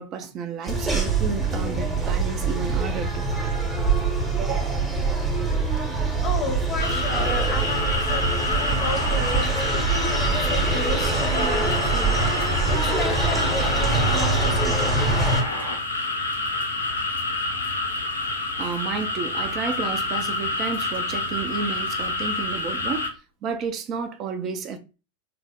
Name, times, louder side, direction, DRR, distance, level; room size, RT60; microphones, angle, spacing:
voice 1, 0.0-3.6 4.4-4.9 18.6-23.1 23.4-24.8, right 6 dB, 30° right, 0.5 m, -31 dB
sound 1, 0.7-15.4, right 3 dB, 10° right, 0.9 m, -24 dB
voice 2, 6.2-15.0, left 2 dB, 30° left, 0.7 m, -33 dB
sound 2, 6.8-23.1, left 2 dB, 80° left, 0.6 m, -28 dB
sound 3, 6.9-15.8, equal, 85° right, 0.8 m, -32 dB
3.4 x 2.0 x 3.6 m
figure-of-eight pair, 90°, 0 cm